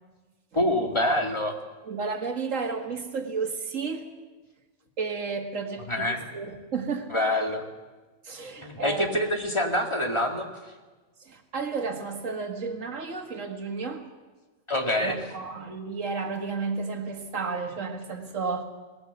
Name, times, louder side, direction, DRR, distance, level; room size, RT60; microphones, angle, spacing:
voice 1, 0.5-1.5 5.9-6.3 7.1-7.6 8.6-10.5 14.7-15.2, left 1 dB, 25° left, 3 dB, 2.1 m, -26 dB
voice 2, 1.9-4.1 5.0-7.1 8.2-9.3 11.2-14.1 15.0-18.6, right 4 dB, 90° right, 5 dB, 2.2 m, -32 dB
19.5 x 17.5 x 8.1 m, 1.3 s
omnidirectional pair, 1.3 m